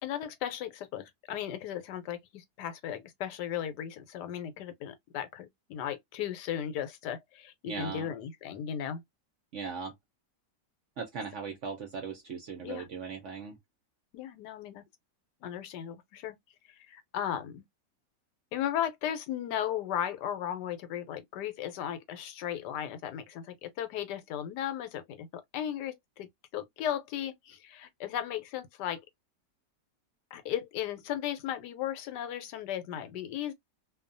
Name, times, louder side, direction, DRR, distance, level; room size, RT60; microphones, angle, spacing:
voice 1, 0.0-9.0 12.6-12.9 14.1-14.8 15.4-16.4 16.7-17.6 18.5-29.0 30.3-33.5, left 10 dB, 80° left, 1.2 m, -36 dB
voice 2, 7.6-8.1 9.5-9.9 11.0-13.6, right 5 dB, 60° right, 0.8 m, -38 dB
2.6 x 2.3 x 2.5 m
omnidirectional pair, 1.8 m